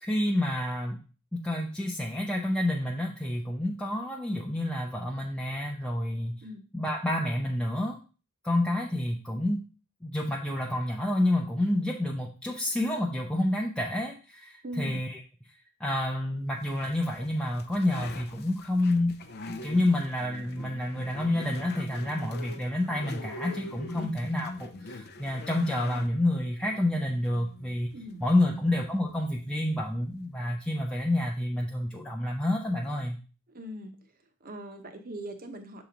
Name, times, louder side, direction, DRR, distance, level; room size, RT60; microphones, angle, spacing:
voice 1, 0.0-1.0 1.3-6.4 6.7-8.0 8.4-9.6 10.0-15.2 15.8-19.1 19.6-27.9 28.2-33.2, left 1 dB, 5° left, -2 dB, 0.6 m, -29 dB
voice 2, 14.6-15.0 23.9-24.2 27.9-28.9 33.5-34.0 34.4-35.8, equal, 40° right, 6 dB, 0.9 m, -41 dB
sound 1, 16.6-30.6, left 2 dB, 45° left, 0.6 m, -45 dB
7.0 x 3.0 x 5.0 m, 0.35 s
head